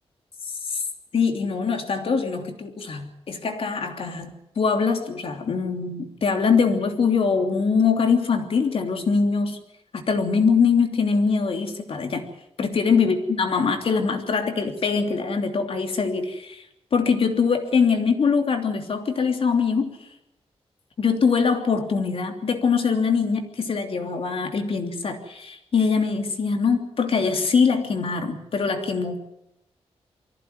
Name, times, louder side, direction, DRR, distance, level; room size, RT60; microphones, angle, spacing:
voice 1, 0.4-0.8 1.1-9.6 9.9-12.2 12.6-16.6 16.9-20.0 21.0-29.2, left 5 dB, 60° left, 4 dB, 3.1 m, -23 dB
24.0 x 15.5 x 9.4 m, 0.82 s
wide cardioid pair, 145°, 11 cm